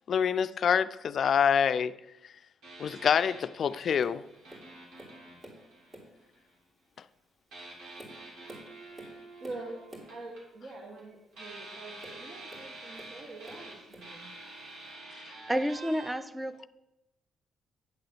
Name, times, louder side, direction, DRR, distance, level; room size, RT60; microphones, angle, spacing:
voice 1, 0.0-2.0 2.8-4.2, left 7 dB, 55° left, 0.3 m, -26 dB
sound 1, 2.6-6.5 7.5-11.0 11.3-16.1, right 2 dB, 80° right, 2.9 m, -48 dB
Tap, 4.0-4.2 4.5-5.6 5.9-6.3 6.9-7.1 7.6-10.2 12.0-13.2 13.4-14.2 14.9-15.0, right 1 dB, 35° right, 2.9 m, -50 dB
voice 2, 9.4-9.8 10.1-14.3, right 2 dB, 50° right, 1.6 m, -45 dB
voice 3, 15.5-16.7, equal, 10° right, 0.5 m, -30 dB
9.5 x 3.9 x 6.8 m
cardioid pair, 90°, 0 cm